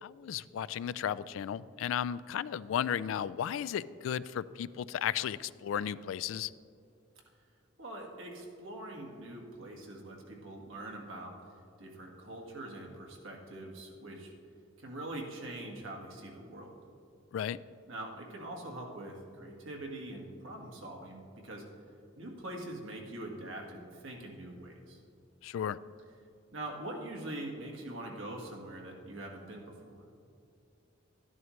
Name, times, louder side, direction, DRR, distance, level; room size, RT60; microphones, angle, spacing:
voice 1, 0.0-6.5 17.3-17.6 25.4-25.8, left 9 dB, 80° left, 18 dB, 0.3 m, -34 dB
voice 2, 7.8-11.3 11.8-14.3 14.8-16.7 17.9-21.7 22.2-25.0 26.5-30.0, right 1 dB, 85° right, 0 dB, 1.7 m, -43 dB
12.0 x 11.0 x 3.2 m, 2.5 s
head